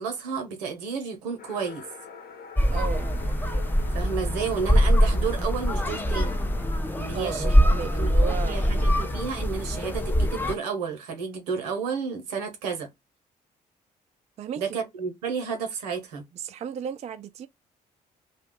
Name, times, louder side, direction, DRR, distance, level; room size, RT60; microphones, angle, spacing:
voice 1, 0.0-1.8 3.9-6.4 7.0-12.9 14.6-16.2, right 6 dB, 75° right, 0.8 m, -32 dB
sound 1, 1.4-9.2, left 7 dB, 45° left, 1.0 m, -45 dB
sound 2, 2.6-10.5, equal, 10° left, 0.6 m, -23 dB
voice 2, 2.7-3.1 7.1-8.6 14.4-14.6 16.3-17.5, right 8 dB, 35° right, 0.4 m, -34 dB
2.7 x 2.3 x 3.6 m
figure-of-eight pair, 45°, 21 cm